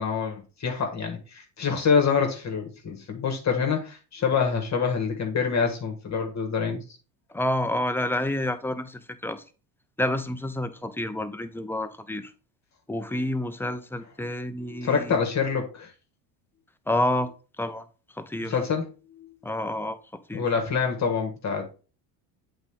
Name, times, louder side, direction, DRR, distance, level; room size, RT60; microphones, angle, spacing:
voice 1, 0.0-6.8 14.7-15.9 18.5-19.3 20.3-21.7, left 6 dB, 35° left, 1.6 m, -26 dB
voice 2, 7.3-9.4 10.0-12.3 12.9-15.2 16.9-17.3 17.6-17.9 18.1-18.5 19.4-20.0 20.3-20.4, left 1 dB, 5° left, 0.5 m, -29 dB
8.0 x 3.8 x 3.6 m
supercardioid pair, 90°, 48 cm